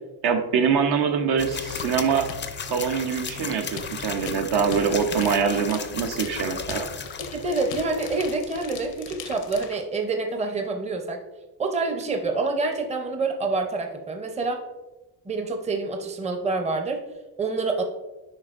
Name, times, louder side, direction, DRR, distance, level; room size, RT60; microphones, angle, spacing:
voice 1, 0.2-2.3 2.6-6.9, right 6 dB, 65° right, 5 dB, 0.8 m, -24 dB
sound 1, 1.4-8.4, left 6 dB, 25° left, 0.4 m, -35 dB
sound 2, 1.8-9.8, left 8 dB, 85° left, 0.8 m, -41 dB
voice 2, 7.2-11.2 11.6-14.6 15.2-17.0 17.4-17.8, right 3 dB, 15° right, 4 dB, 0.6 m, -27 dB
8.7 x 5.2 x 2.4 m, 1.1 s
cardioid pair, 125°, 42 cm